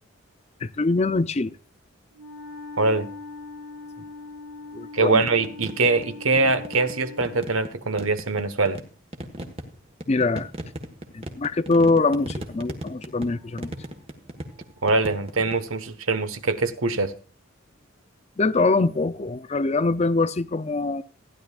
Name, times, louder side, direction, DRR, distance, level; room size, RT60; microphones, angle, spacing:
voice 1, 0.6-1.5 4.7-5.2 10.1-10.5 11.1-13.7 18.4-21.0, left 3 dB, 30° left, 0.5 m, -23 dB
Wind instrument woodwind instrument, 2.1-7.5, left 3 dB, 65° right, 2.9 m, -41 dB
voice 2, 2.8-3.1 4.9-8.8 14.8-17.1, right 3 dB, 85° right, 1.2 m, -23 dB
sound 1, 5.2-6.1 6.4-7.7 8.0-15.6, right 1 dB, 30° right, 1.4 m, -37 dB
15.5 x 10.5 x 2.4 m
head